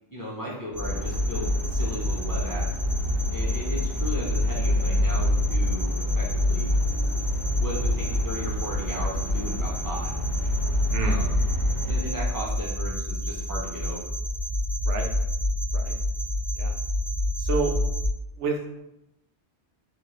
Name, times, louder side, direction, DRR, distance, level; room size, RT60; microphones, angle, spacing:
voice 1, 0.1-2.6 3.3-6.8 7.5-10.1 11.0-11.4 11.9-14.0, equal, 25° left, -6 dB, 0.5 m, -36 dB
sound 1, 0.7-18.1, left 1 dB, 20° right, 0.5 m, -26 dB
sound 2, 0.8-12.0, right 2 dB, 60° left, 0.7 m, -34 dB
voice 2, 17.4-17.7 18.4-18.7, right 4 dB, 85° right, 3 dB, 0.9 m, -29 dB
3.8 x 2.5 x 3.2 m, 0.88 s
omnidirectional pair, 1.2 m